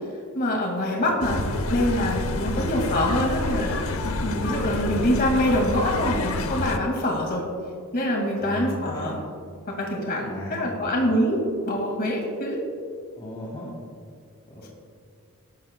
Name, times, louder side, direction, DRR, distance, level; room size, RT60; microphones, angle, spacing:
voice 1, 0.3-1.4 1.7-7.4 7.9-9.2 9.7-12.6, left 1 dB, 45° left, 0 dB, 2.0 m, -25 dB
voice 2, 0.9-1.5 2.5-2.7 4.8-5.2 8.4-9.2 10.2-11.1 13.2-13.7 14.4-14.7, equal, 25° left, -5 dB, 2.3 m, -37 dB
sound 1, 1.2-6.8, left 2 dB, 65° left, 0.8 m, -28 dB
18.0 x 12.5 x 2.2 m, 2.2 s
head